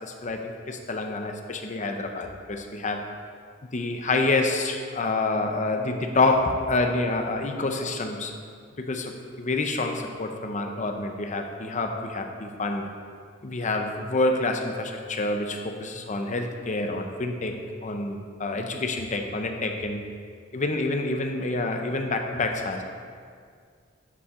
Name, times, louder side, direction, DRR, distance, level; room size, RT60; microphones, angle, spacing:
voice 1, 0.0-3.0 3.7-8.4 8.8-12.9 13.4-20.0 20.5-22.8, left 2 dB, 40° left, 5 dB, 0.7 m, -27 dB
11.0 x 5.7 x 3.7 m, 2.1 s
head